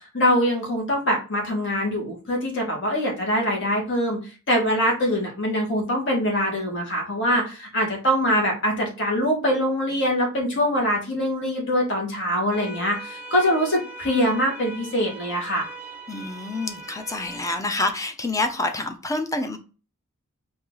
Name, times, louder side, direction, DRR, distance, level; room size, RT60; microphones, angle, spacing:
voice 1, 0.1-4.2 4.5-15.7, equal, 60° left, 1.8 m, -23 dB
sound 1, 12.5-17.5, right 1 dB, 10° right, 0.9 m, -40 dB
voice 2, 16.1-19.6, left 2 dB, 15° left, 0.6 m, -27 dB
4.2 x 2.8 x 3.9 m
head